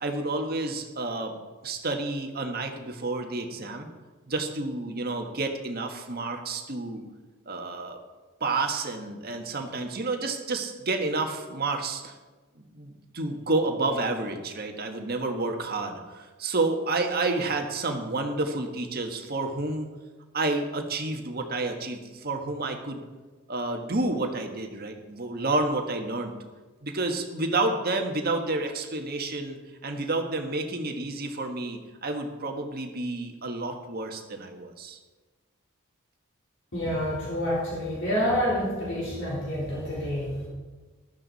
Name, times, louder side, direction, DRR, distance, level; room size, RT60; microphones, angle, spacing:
voice 1, 0.0-1.3 1.6-3.9 4.3-7.0 7.5-8.0 8.4-12.1 12.7-19.9 20.3-23.0 23.5-26.3 26.8-35.0, right 2 dB, 45° right, 4 dB, 1.6 m, -30 dB
voice 2, 36.7-40.4, equal, 60° left, -6 dB, 4.0 m, -28 dB
14.5 x 12.5 x 4.2 m, 1.3 s
head